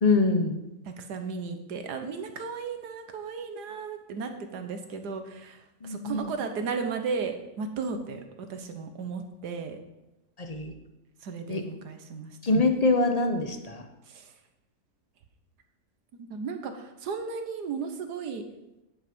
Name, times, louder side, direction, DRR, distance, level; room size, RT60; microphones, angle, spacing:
voice 1, 0.0-0.6 5.8-6.3 7.9-8.0 10.4-10.7 11.5-11.6 12.4-13.8, left 3 dB, 30° left, 6 dB, 0.9 m, -24 dB
voice 2, 0.9-9.8 11.2-12.3 14.1-14.3 16.2-18.4, right 5 dB, 85° right, 7 dB, 1.7 m, -35 dB
9.9 x 8.7 x 5.3 m, 0.95 s
omnidirectional pair, 1.7 m